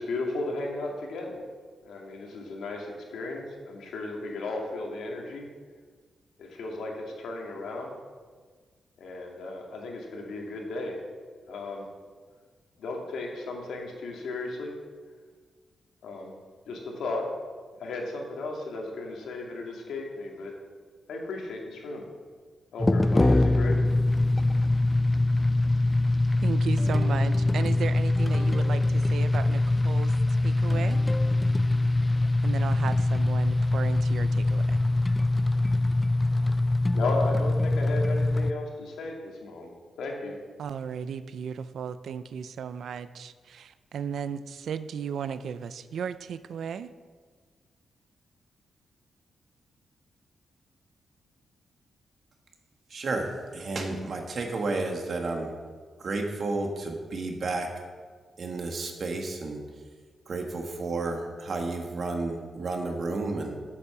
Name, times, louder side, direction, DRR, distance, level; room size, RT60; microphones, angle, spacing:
voice 1, 0.0-1.4 1.8-5.5 6.4-7.9 9.0-11.0 11.5-11.8 12.8-14.7 16.0-16.3 16.7-17.3 17.8-20.5 21.1-22.0 22.7-24.0 36.9-39.7 40.0-40.4, left 2 dB, 90° left, 0 dB, 2.3 m, -35 dB
sound 1, 22.8-38.5, left 2 dB, 15° left, 0.3 m, -23 dB
voice 2, 26.4-30.2 30.4-31.0 32.4-34.8 40.6-46.9, right 7 dB, 75° right, 13 dB, 0.5 m, -35 dB
voice 3, 52.9-55.5 56.0-57.7 58.4-59.6 60.3-63.6, right 3 dB, 50° right, 3 dB, 1.7 m, -31 dB
8.4 x 8.2 x 7.0 m, 1.5 s
wide cardioid pair, 125°, 0 cm